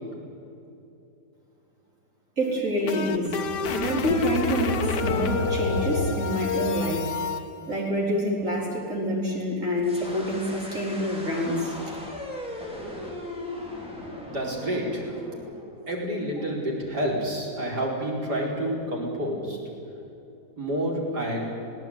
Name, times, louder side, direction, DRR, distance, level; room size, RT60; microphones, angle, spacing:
sound 1, 2.4-7.4, left 4 dB, 70° left, 1.8 m, -28 dB
voice 1, 2.4-3.4 3.7-7.1 7.7-12.0, equal, 45° right, -2 dB, 4.6 m, -27 dB
sound 2, 9.8-16.6, left 1 dB, 5° right, 4.2 m, -39 dB
voice 2, 14.3-15.2 15.9-19.6 20.6-21.4, equal, 60° right, -2 dB, 5.2 m, -29 dB
20.5 x 17.0 x 9.6 m, 2.8 s
omnidirectional pair, 2.0 m